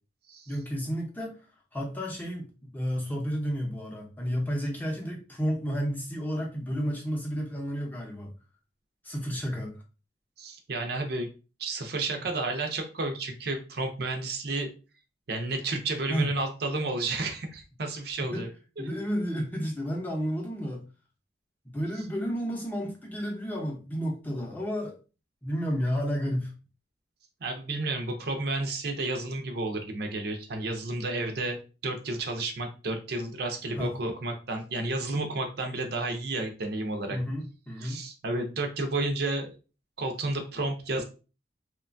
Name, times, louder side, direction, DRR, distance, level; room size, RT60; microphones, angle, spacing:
voice 1, 0.5-1.4 1.7-8.3 9.0-9.8 16.1-16.3 18.2-18.5 18.8-20.8 21.6-25.0 25.4-26.5 33.7-33.9 37.1-38.0, equal, 10° left, 0.6 m, -31 dB
voice 2, 10.4-11.3 11.6-14.7 15.3-18.5 27.4-37.2 37.8-39.6 40.0-41.0, right 2 dB, 60° right, 0.5 m, -31 dB
2.9 x 2.2 x 2.5 m
head